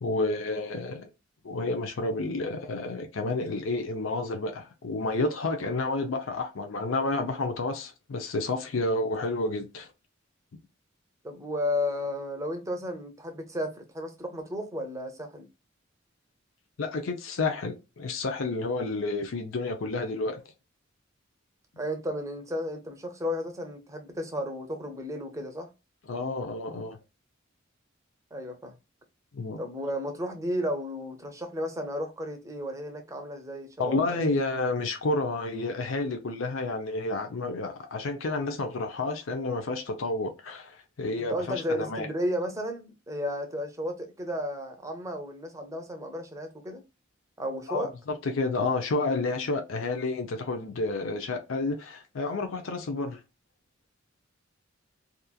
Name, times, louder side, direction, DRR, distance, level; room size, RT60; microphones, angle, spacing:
voice 1, 0.0-1.1 1.4-9.9 16.8-20.4 26.1-27.0 29.3-29.6 33.8-42.1 47.7-53.2, left 2 dB, 80° left, 0.6 m, -30 dB
voice 2, 11.2-15.5 21.8-25.7 28.3-28.7 29.6-34.4 41.2-46.8 47.4-47.9, left 1 dB, 15° right, 0.6 m, -33 dB
2.9 x 2.4 x 2.2 m
head